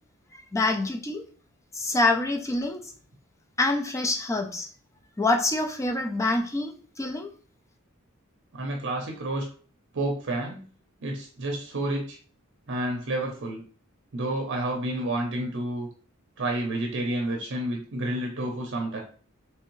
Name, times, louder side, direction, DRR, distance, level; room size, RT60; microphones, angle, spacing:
voice 1, 0.3-1.2 1.7-2.8 3.6-4.7 5.2-7.3, left 2 dB, 15° left, 4 dB, 0.4 m, -26 dB
voice 2, 8.5-9.4 9.9-10.6 11.0-12.2 12.7-13.6 14.1-15.9 16.4-19.0, right 1 dB, 60° right, 2 dB, 0.6 m, -30 dB
3.4 x 3.2 x 3.1 m, 0.43 s
head